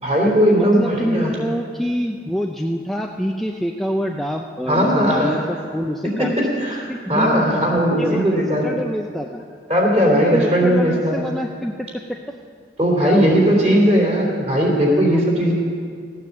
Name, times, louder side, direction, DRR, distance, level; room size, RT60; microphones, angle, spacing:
voice 1, 0.0-1.4 4.7-5.4 6.0-8.7 9.7-11.3 12.8-15.5, equal, 35° right, -2 dB, 3.2 m, -18 dB
voice 2, 0.6-6.3 6.9-9.4 10.0-12.2 13.0-13.9 14.9-15.2, equal, ahead, 1 dB, 0.4 m, -26 dB
15.5 x 9.5 x 7.2 m, 2.2 s
head